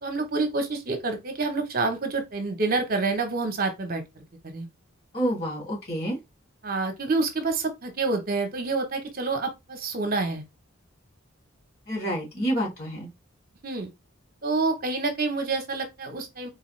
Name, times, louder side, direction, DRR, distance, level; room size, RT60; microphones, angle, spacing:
voice 1, 0.0-4.0 4.4-4.7 6.6-10.4 13.6-13.9 14.4-16.5, right 3 dB, 45° right, 0.9 m, -27 dB
voice 2, 5.1-6.2 11.9-13.1, right 1 dB, 50° left, 2.7 m, -28 dB
4.0 x 3.4 x 3.2 m
head